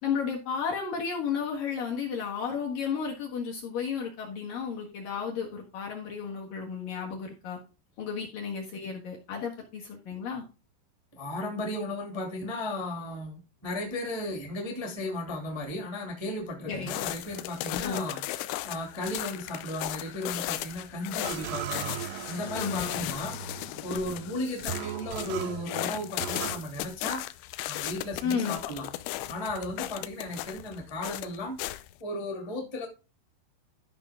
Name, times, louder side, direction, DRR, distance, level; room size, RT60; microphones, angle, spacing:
voice 1, 0.0-7.6 8.0-10.4 16.7-16.9 17.8-18.1 22.6-23.0 28.2-28.6, left 6 dB, 60° left, -1 dB, 2.5 m, -33 dB
voice 2, 11.1-18.2 18.6-27.2 27.7-28.9 29.3-32.9, left 1 dB, 15° left, 1 dB, 1.0 m, -35 dB
sound 1, 16.7-31.9, left 16 dB, 85° left, 2.7 m, -36 dB
sound 2, 21.2-26.6, right 11 dB, 85° right, 2.4 m, -39 dB
14.0 x 5.8 x 3.7 m, 0.30 s
omnidirectional pair, 5.8 m